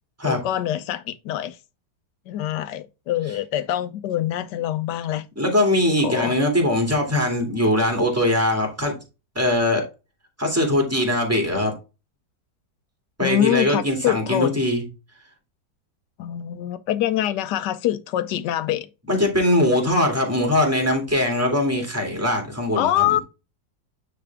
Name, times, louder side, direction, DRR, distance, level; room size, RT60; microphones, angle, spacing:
voice 1, 0.2-1.6 2.3-5.2 6.0-6.3 13.2-14.5 16.2-18.9 22.8-23.2, left 12 dB, 70° left, 1.2 m, -24 dB
voice 2, 5.4-9.0 9.3-9.8 10.4-11.7 13.2-14.8 19.1-23.2, left 1 dB, 10° right, 2.3 m, -21 dB
9.6 x 3.4 x 3.5 m
omnidirectional pair, 2.0 m